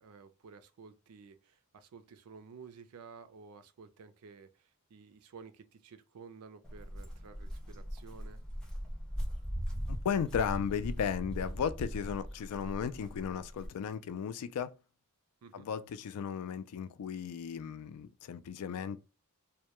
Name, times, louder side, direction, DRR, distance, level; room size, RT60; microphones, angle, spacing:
voice 1, 0.0-8.4 15.4-15.7, right 5 dB, 85° right, 0.4 m, -53 dB
Walk footsteps, 6.6-13.7, equal, 5° left, 0.5 m, -40 dB
voice 2, 9.9-14.7 15.5-19.0, left 7 dB, 85° left, 0.3 m, -35 dB
2.2 x 2.1 x 2.9 m
head